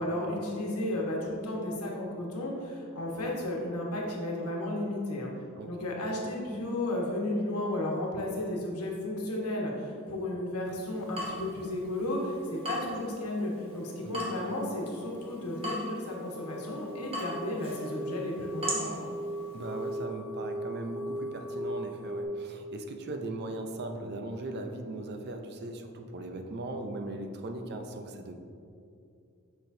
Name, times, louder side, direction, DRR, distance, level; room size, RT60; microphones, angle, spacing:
voice 1, 0.0-5.3 5.7-19.0, left 1 dB, 85° left, -2 dB, 1.2 m, -33 dB
Water tap faucet / Drip, 10.8-20.0, equal, 25° right, 1.0 m, -41 dB
sound 1, 13.9-22.2, right 1 dB, 90° right, 0.9 m, -39 dB
voice 2, 19.5-28.3, right 2 dB, 50° right, 5 dB, 0.5 m, -38 dB
6.7 x 5.9 x 2.6 m, 2.6 s
head